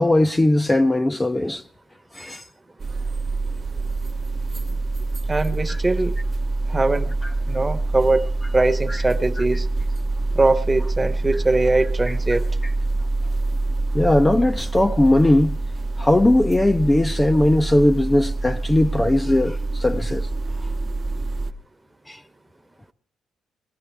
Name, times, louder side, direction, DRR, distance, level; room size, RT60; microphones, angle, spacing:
voice 1, 0.0-1.6 2.1-2.4 13.9-15.6 16.0-20.3 22.1-22.2, left 1 dB, 15° left, 0.6 m, -18 dB
sound 1, 2.8-21.5, right 2 dB, 45° right, 1.0 m, -26 dB
voice 2, 5.3-6.1 6.7-7.1 7.5-8.3 8.5-9.7 10.3-12.5, right 2 dB, 20° right, 1.1 m, -21 dB
21.0 x 15.5 x 3.4 m
supercardioid pair, 70°, 0 cm